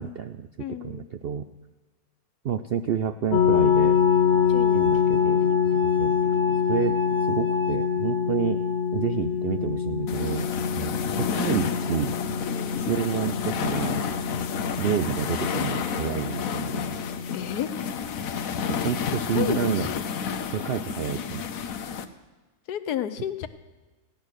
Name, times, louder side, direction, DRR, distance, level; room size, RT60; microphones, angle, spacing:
voice 1, 0.0-1.5 2.4-4.0 4.7-5.4 6.0-6.1 6.7-7.0 7.3-8.6 8.9-12.1 12.8-14.0 14.8-17.0 18.7-19.9 20.5-21.5, right 8 dB, 75° right, 9 dB, 0.5 m, -29 dB
voice 2, 0.6-1.1 4.5-4.8 12.5-12.7 17.3-17.7 19.1-20.0 22.7-23.5, left 10 dB, 85° left, 11 dB, 1.3 m, -32 dB
sound 1, 3.3-17.4, left 8 dB, 45° left, 0.7 m, -25 dB
sound 2, 3.5-10.5 11.3-11.9, left 2 dB, 20° right, 0.5 m, -34 dB
sound 3, 10.1-22.0, left 7 dB, 65° left, 1.2 m, -31 dB
16.0 x 10.5 x 6.4 m, 1.2 s
omnidirectional pair, 1.6 m